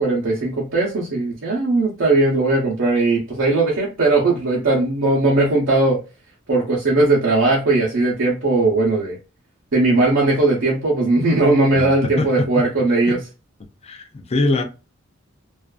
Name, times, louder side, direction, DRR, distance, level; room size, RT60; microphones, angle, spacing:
voice 1, 0.0-6.0 6.5-9.2 9.7-13.2, right 2 dB, 70° right, 0.6 m, -18 dB
voice 2, 13.8-14.6, left 2 dB, 30° left, 0.4 m, -22 dB
2.4 x 2.2 x 2.3 m
head